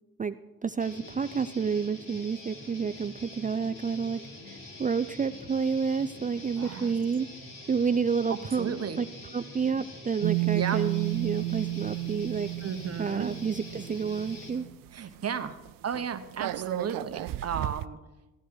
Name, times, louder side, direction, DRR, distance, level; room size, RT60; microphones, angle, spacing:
voice 1, 0.6-4.2 4.5-7.3 7.7-9.1 9.3-12.5 13.0-14.7, right 6 dB, 25° right, 11 dB, 0.4 m, -29 dB
Guitar, 0.8-14.5, left 2 dB, 65° left, 4.6 m, -45 dB
voice 2, 6.6-6.9 8.6-9.0 10.5-10.8 12.6-13.3 14.9-15.6 15.8-18.0, right 7 dB, 45° right, 9 dB, 1.1 m, -34 dB
sound 1, 10.2-14.9 15.2-15.4 15.7-17.9, right 18 dB, 80° right, 0.5 m, -32 dB
15.5 x 10.5 x 4.8 m, 1.1 s
cardioid pair, 80°, 33 cm